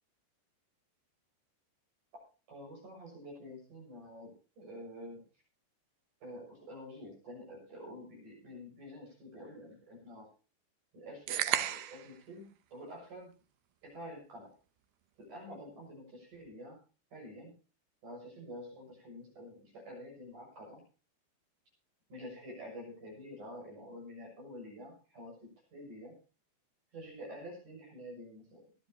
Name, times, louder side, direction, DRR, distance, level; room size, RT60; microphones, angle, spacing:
voice 1, 2.5-5.2 6.2-10.3 10.9-12.5 12.7-13.3 13.8-14.5 15.2-16.8 17.1-17.5 18.0-20.8 22.1-26.1 26.9-28.6, equal, 40° right, -2 dB, 8.0 m, -48 dB
sound 1, 11.3-12.1, right 12 dB, 80° right, 2.3 m, -32 dB
23.5 x 10.5 x 2.9 m, 0.35 s
omnidirectional pair, 5.4 m